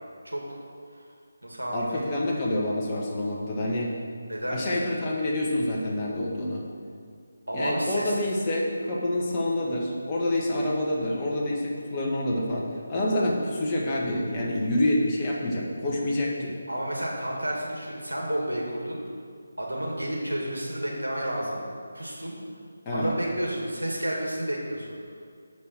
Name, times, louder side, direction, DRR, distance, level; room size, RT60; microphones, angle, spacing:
voice 1, 0.2-0.6 1.4-2.1 4.3-4.6 7.5-8.1 16.7-19.0 19.6-21.6 21.9-22.4 22.9-24.9, right 1 dB, 90° right, -3 dB, 2.2 m, -31 dB
voice 2, 1.7-3.9 4.5-6.6 7.5-16.5 22.8-23.1, left 1 dB, 20° left, -4 dB, 1.5 m, -27 dB
7.5 x 5.2 x 7.5 m, 2.2 s
figure-of-eight pair, 155°, 0 cm